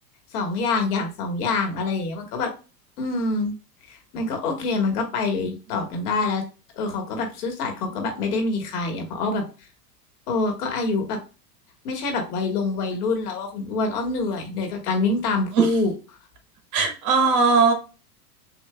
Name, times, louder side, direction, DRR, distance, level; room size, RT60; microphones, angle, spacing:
voice 1, 0.3-2.5 3.0-3.5 3.8-6.4 6.7-9.4 10.3-11.2 11.8-15.9, left 3 dB, 70° left, 4 dB, 1.6 m, -26 dB
voice 2, 16.7-17.7, right 4 dB, 40° right, 5 dB, 1.2 m, -19 dB
6.8 x 2.6 x 2.2 m, 0.33 s
hypercardioid pair, 115°, 49 cm